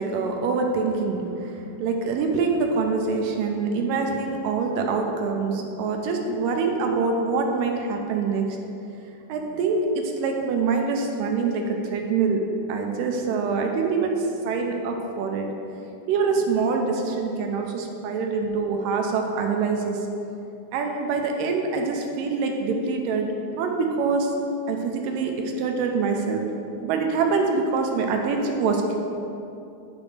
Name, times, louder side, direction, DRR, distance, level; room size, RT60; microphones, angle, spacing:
voice 1, 0.0-8.5 9.3-12.4 12.7-15.5 16.1-20.1 20.7-24.3 24.7-26.5 26.8-29.0, right 4 dB, 80° right, 2 dB, 2.2 m, -25 dB
10.0 x 3.5 x 4.9 m, 2.8 s
omnidirectional pair, 4.0 m